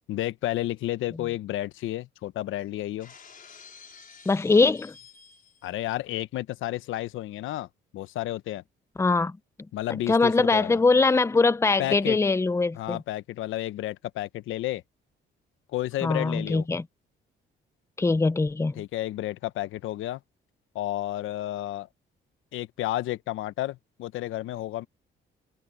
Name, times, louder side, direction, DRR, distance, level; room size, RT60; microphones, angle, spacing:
voice 1, 0.1-3.1 5.6-7.7 7.9-8.6 9.7-10.8 11.8-12.2 12.7-14.8 15.7-16.7 18.7-20.2 20.7-21.9 22.5-24.9, left 15 dB, 85° left, 0.9 m, -31 dB
Shatter, 3.0-5.8, left 6 dB, 45° left, 5.1 m, -50 dB
voice 2, 4.3-4.9 9.0-9.4 10.1-13.0 16.0-16.8 18.0-18.8, left 3 dB, 15° left, 0.6 m, -22 dB
cardioid pair, 90°, 20 cm